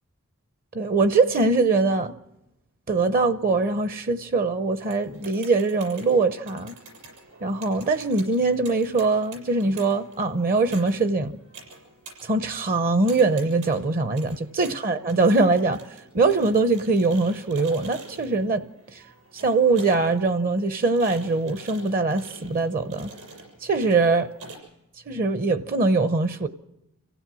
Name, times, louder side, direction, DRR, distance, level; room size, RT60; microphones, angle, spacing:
voice 1, 0.7-2.1 2.9-6.7 7.4-11.4 12.2-15.8 16.1-18.6 18.9-19.0 19.3-23.1 23.6-24.3 25.1-26.5, right 3 dB, 40° right, 0.7 m, -22 dB
sound 1, 4.8-24.6, right 3 dB, 70° right, 6.8 m, -47 dB
26.0 x 16.0 x 6.2 m
head